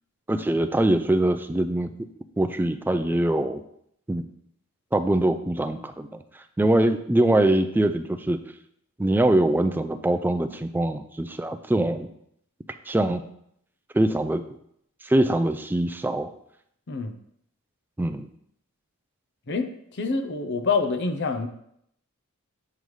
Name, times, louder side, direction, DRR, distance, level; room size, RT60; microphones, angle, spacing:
voice 1, 0.3-1.9 2.4-3.6 4.1-4.2 4.9-6.1 6.6-8.4 9.0-12.1 12.9-13.2 13.9-14.4 15.0-16.3 18.0-18.3, right 1 dB, 10° right, 8 dB, 0.3 m, -23 dB
voice 2, 19.5-21.5, left 4 dB, 55° left, 8 dB, 0.6 m, -26 dB
7.7 x 5.3 x 3.2 m, 0.71 s
head